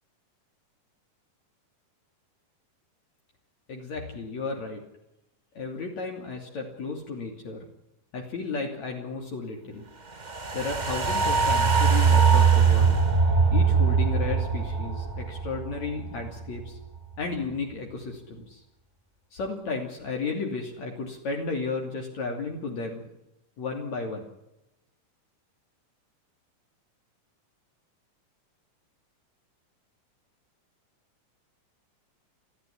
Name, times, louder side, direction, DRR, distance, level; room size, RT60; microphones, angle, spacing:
voice 1, 3.7-4.8 5.6-7.7 8.1-9.9 10.5-13.0 13.5-16.8 17.2-18.6 19.3-23.0 23.6-24.3, left 4 dB, 55° left, 1 dB, 4.0 m, -33 dB
sound 1, 10.2-16.6 17.0-17.1, right 5 dB, 75° right, 0.4 m, -22 dB
30.0 x 11.5 x 10.0 m, 0.87 s
omnidirectional pair, 3.9 m